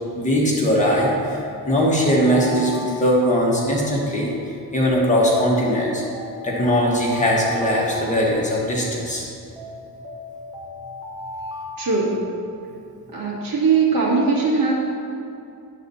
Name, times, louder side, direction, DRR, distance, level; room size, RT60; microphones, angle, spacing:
voice 1, 0.2-6.0 6.4-9.2, equal, 20° left, -5 dB, 1.5 m, -20 dB
Alarm, 0.8-4.5 5.2-8.9 9.6-12.8, left 1 dB, 10° right, 1.2 m, -37 dB
voice 2, 11.8-12.1 13.1-14.7, right 4 dB, 60° right, -4 dB, 2.2 m, -20 dB
10.5 x 4.1 x 7.1 m, 2.6 s
wide cardioid pair, 155°, 38 cm